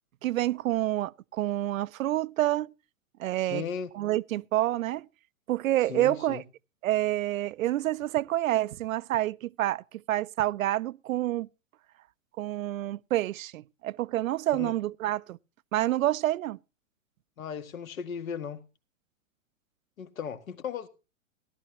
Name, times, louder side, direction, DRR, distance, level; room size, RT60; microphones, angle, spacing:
voice 1, 0.2-2.7 3.2-3.6 3.9-5.1 5.5-6.4 6.8-11.5 12.4-15.4 15.7-16.6, right 14 dB, 75° right, 0.6 m, -28 dB
voice 2, 3.4-3.9 5.9-6.4 14.5-14.7 17.4-18.6 20.0-20.9, left 7 dB, 80° left, 1.9 m, -36 dB
17.0 x 12.0 x 2.9 m
hypercardioid pair, 120°, 41 cm